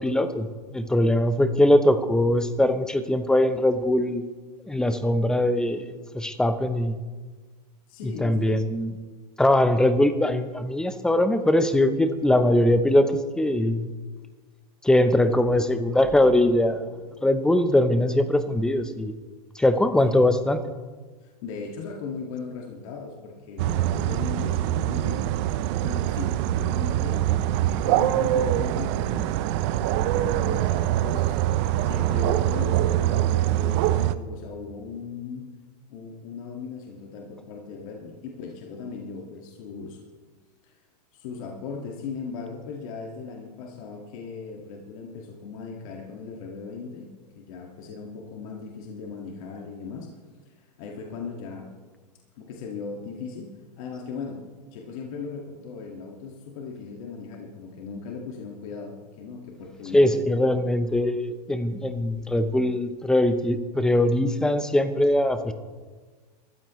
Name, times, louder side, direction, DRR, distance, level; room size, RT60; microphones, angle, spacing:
voice 1, 0.0-4.2 4.7-7.0 8.0-8.9 9.4-13.9 14.8-16.9 17.2-19.1 19.6-20.6 59.9-65.5, left 1 dB, 5° left, 9 dB, 0.7 m, -21 dB
voice 2, 7.9-8.6 20.0-20.2 21.4-25.4 25.8-27.5 27.8-29.4 29.9-35.5 35.9-40.0 40.6-40.7 41.1-47.1 47.4-50.1 50.5-51.7 52.4-53.5 53.8-54.4 54.7-60.5, left 5 dB, 55° left, 0 dB, 2.0 m, -38 dB
sound 1, 23.6-34.2, right 13 dB, 45° right, 0.6 m, -24 dB
22.5 x 14.0 x 3.1 m, 1.4 s
supercardioid pair, 145°, 21 cm